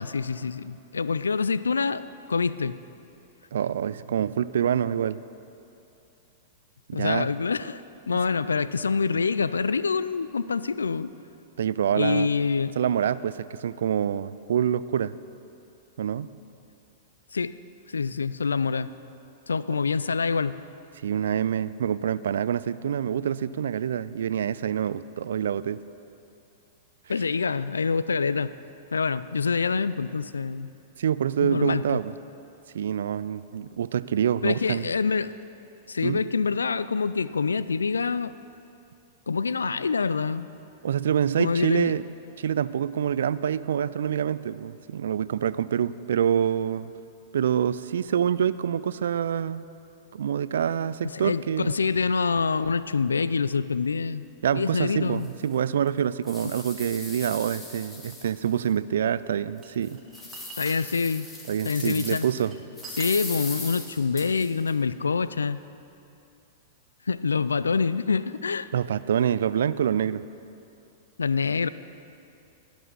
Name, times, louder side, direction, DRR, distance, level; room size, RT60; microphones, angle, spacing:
voice 1, 0.0-2.8 6.9-7.8 8.1-11.1 11.9-12.7 17.3-17.6 17.9-18.9 19.5-20.6 27.1-28.5 28.9-30.7 31.4-32.0 34.4-35.4 35.9-38.3 39.3-40.5 41.4-41.9 51.1-54.3 54.5-55.3 60.6-61.3 61.6-62.3 63.0-65.6 67.1-68.7 71.2-71.7, left 5 dB, 85° left, 16 dB, 0.3 m, -26 dB
voice 2, 3.5-5.2 6.9-7.3 11.6-12.3 12.8-15.2 16.0-16.3 21.0-25.8 31.0-32.1 32.7-34.9 36.0-36.2 40.8-42.0 42.4-46.9 47.3-49.7 50.1-51.8 54.4-60.0 61.5-62.5 68.7-70.2, right 9 dB, 70° right, 17 dB, 0.3 m, -26 dB
sound 1, 55.2-55.3 55.9-58.7 59.1-59.2 59.7-62.4 62.8-64.7, left 2 dB, 20° left, 2.1 m, -39 dB
sound 2, 59.3-61.4 62.1-63.6, right 5 dB, 25° right, 1.8 m, -45 dB
16.5 x 6.1 x 6.9 m, 2.8 s
hypercardioid pair, 105°, 0 cm